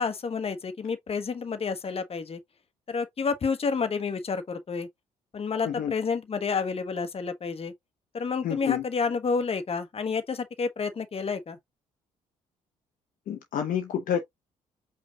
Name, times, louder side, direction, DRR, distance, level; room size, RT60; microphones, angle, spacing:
voice 1, 0.0-2.4 2.9-4.9 5.3-7.7 8.1-11.6, left 5 dB, 35° left, 1.1 m, -29 dB
voice 2, 8.4-8.9 13.3-14.2, left 9 dB, 55° left, 0.8 m, -28 dB
5.1 x 2.4 x 3.9 m
hypercardioid pair, 50°, 17 cm